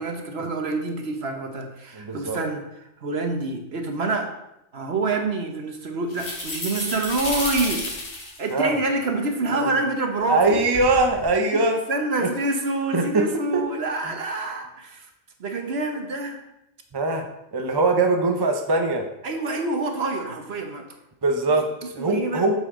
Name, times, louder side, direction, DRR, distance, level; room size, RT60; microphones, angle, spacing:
voice 1, 0.0-2.6 3.0-4.3 4.7-7.8 8.4-10.4 11.4-11.6 11.9-15.1 15.4-16.4 19.2-20.9 21.8-22.5, right 2 dB, 55° right, 4 dB, 1.2 m, -27 dB
voice 2, 1.9-2.4 8.5-8.7 10.3-11.8 12.2-12.3 12.9-13.7 14.0-14.2 16.9-19.1 21.2-21.7 21.9-22.6, right 2 dB, 25° right, 3 dB, 0.7 m, -22 dB
sound 1, 6.1-8.5 9.1-9.7 10.4-11.2, left 1 dB, 45° left, 1.9 m, -32 dB
8.2 x 7.1 x 3.7 m, 0.86 s
omnidirectional pair, 1.4 m